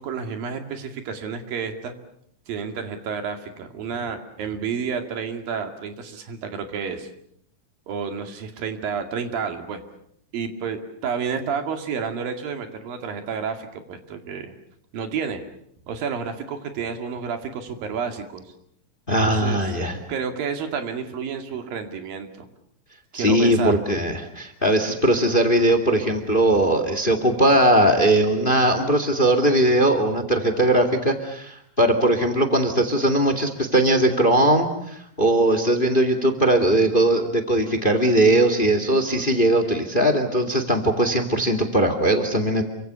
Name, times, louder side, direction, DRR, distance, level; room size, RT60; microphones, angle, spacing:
voice 1, 0.0-1.9 2.5-7.1 7.9-9.8 10.3-14.5 14.9-15.4 15.9-18.4 19.3-19.7 20.1-22.5 23.1-23.8, right 6 dB, 80° right, 5 dB, 4.1 m, -30 dB
voice 2, 19.1-20.0 23.1-42.6, right 1 dB, 15° left, 8 dB, 2.0 m, -20 dB
29.0 x 25.0 x 6.9 m, 0.71 s
omnidirectional pair, 4.0 m